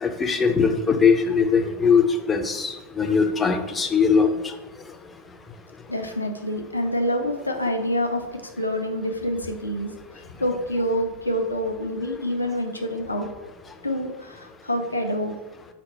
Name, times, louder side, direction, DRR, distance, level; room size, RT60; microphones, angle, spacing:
voice 1, 0.0-4.5 12.1-12.2, left 5 dB, 15° left, 6 dB, 0.4 m, -21 dB
voice 2, 5.9-8.2 8.6-9.9 10.4-13.3 13.8-15.3, equal, 85° left, 4 dB, 0.5 m, -26 dB
5.0 x 2.1 x 4.1 m, 1.1 s
figure-of-eight pair, 90°, 0 cm